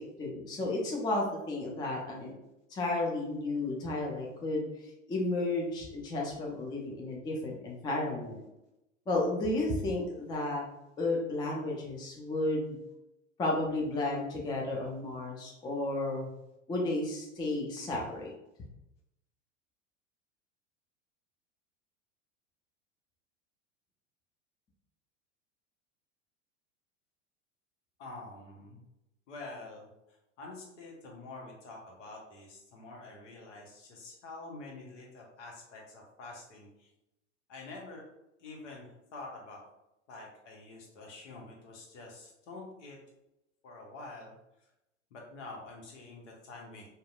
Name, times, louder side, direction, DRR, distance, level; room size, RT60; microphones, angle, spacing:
voice 1, 0.2-2.3 2.7-8.4 9.1-10.6 11.0-12.8 13.4-16.3 16.7-18.3, left 2 dB, 10° left, -2 dB, 0.4 m, -33 dB
voice 2, 28.0-28.8 29.3-29.9 30.4-36.7 37.5-38.0 38.4-39.7 40.1-43.0 43.6-44.3 45.1-46.9, left 2 dB, 70° left, -1 dB, 0.9 m, -47 dB
2.7 x 2.1 x 2.4 m, 0.89 s
hypercardioid pair, 85°, 38 cm